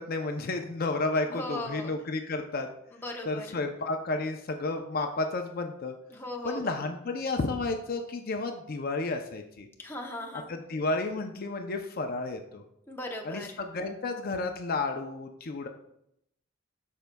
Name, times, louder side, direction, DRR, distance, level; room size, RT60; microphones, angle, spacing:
voice 1, 0.0-2.7 3.2-5.9 6.4-9.7 10.5-12.6 13.2-15.7, left 3 dB, 50° left, 5 dB, 0.5 m, -32 dB
voice 2, 1.3-1.9 3.0-3.5 6.1-6.8 9.8-10.5 12.9-13.6, left 1 dB, 10° left, 0 dB, 0.8 m, -38 dB
12.0 x 4.5 x 2.2 m, 0.77 s
head